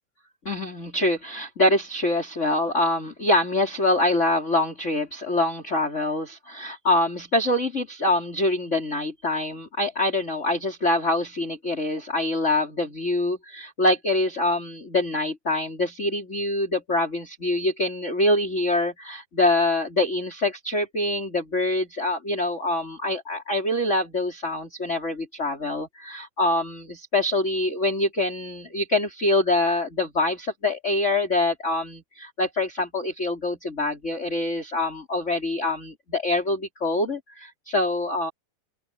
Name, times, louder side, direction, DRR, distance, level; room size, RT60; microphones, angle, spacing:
voice 1, 0.4-38.3, left 2 dB, 15° left, 4.1 m, -25 dB
open air
omnidirectional pair, 4.8 m